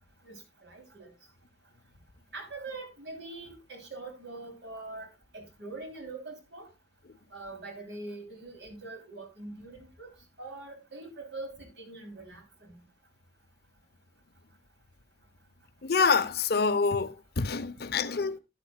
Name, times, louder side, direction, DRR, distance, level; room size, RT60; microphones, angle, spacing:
voice 1, 0.2-1.1 2.3-6.7 7.3-10.1 10.4-12.7, right 2 dB, 90° right, 3.1 m, -43 dB
voice 2, 15.8-18.4, left 4 dB, 65° left, 0.7 m, -26 dB
12.5 x 10.0 x 2.3 m
head